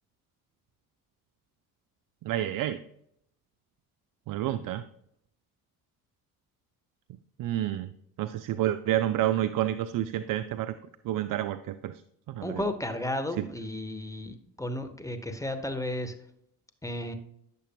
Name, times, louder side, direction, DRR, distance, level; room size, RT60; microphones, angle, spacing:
voice 1, 2.2-2.8 4.3-4.8 7.4-7.9 8.2-10.8 11.0-11.9 12.3-12.7, right 12 dB, 50° right, 11 dB, 0.5 m, -29 dB
voice 2, 12.4-16.1 16.8-17.1, left 1 dB, 10° left, 7 dB, 1.1 m, -33 dB
9.9 x 6.7 x 2.2 m, 0.73 s
hypercardioid pair, 55°, 42 cm